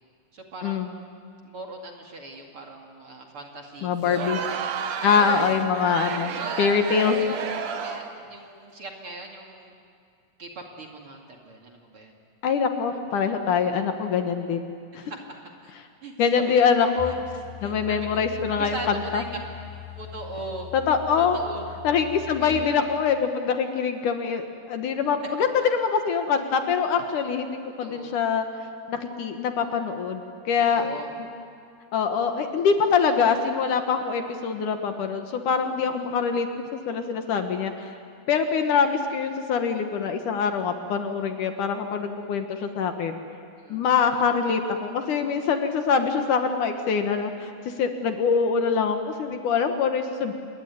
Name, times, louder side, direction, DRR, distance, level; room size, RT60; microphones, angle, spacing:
voice 1, 0.3-0.9 1.4-4.4 5.1-5.6 6.4-6.7 7.0-7.5 7.8-9.8 10.4-10.5 10.8-12.2 15.0-15.7 16.0-16.1 17.1-17.2 17.6-18.2 18.6-19.3 19.9-20.7 21.2-21.7 22.4-22.6 25.6-25.7 27.8-28.1 30.6-31.1 43.6-43.9, right 2 dB, 40° right, 1 dB, 2.8 m, -39 dB
voice 2, 3.8-4.4 5.0-6.3 6.6-7.1 12.4-14.7 14.9-15.0 16.2-19.2 20.7-21.4 21.8-28.5 28.9-30.9 31.9-37.9 38.3-43.2 43.7-50.3, left 6 dB, 65° left, 6 dB, 2.7 m, -24 dB
Crowd, 4.0-8.2, right 7 dB, 60° right, 2.1 m, -31 dB
sound 1, 17.0-22.5, left 10 dB, 85° left, 7.4 m, -41 dB
27.0 x 22.0 x 9.4 m, 2.4 s
omnidirectional pair, 4.1 m